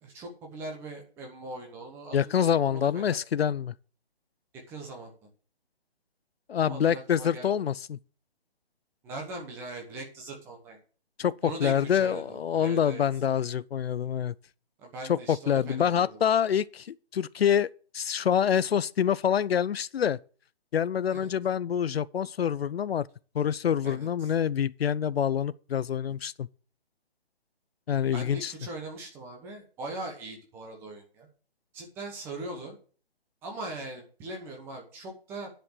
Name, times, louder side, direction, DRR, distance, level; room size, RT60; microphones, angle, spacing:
voice 1, 0.0-3.2 4.7-5.3 6.6-7.6 9.0-10.8 11.4-13.0 14.8-16.3 21.1-21.3 23.8-24.3 28.1-31.3 31.7-32.8 33.4-35.5, right 2 dB, 5° right, 0.9 m, -40 dB
voice 2, 2.1-3.7 6.5-8.0 11.2-14.3 15.1-17.7 17.9-20.2 20.7-23.1 23.3-26.5 27.9-28.5, left 8 dB, 70° left, 0.5 m, -26 dB
10.0 x 5.2 x 6.1 m
hypercardioid pair, 160°, 31 cm